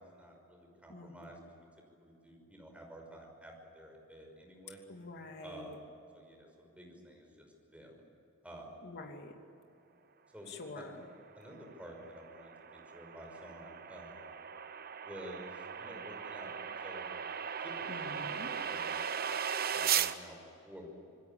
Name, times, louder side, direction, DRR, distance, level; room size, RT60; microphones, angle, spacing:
voice 1, 0.0-1.4 2.0-4.8 5.4-5.7 6.1-8.0 8.4-8.7 10.3-10.8 11.3-12.5 12.9-14.3 15.0-16.5 16.8-17.3 17.6-18.2 18.5-19.1 19.7-20.4 20.6-21.0, equal, 5° right, 1 dB, 5.7 m, -51 dB
voice 2, 0.9-1.3 4.9-5.7 8.8-9.3 10.5-11.0 17.9-18.5, left 2 dB, 55° left, 3 dB, 2.8 m, -47 dB
sound 1, 11.5-20.1, right 8 dB, 45° right, 0.9 m, -37 dB
27.5 x 20.0 x 8.8 m, 2.7 s
head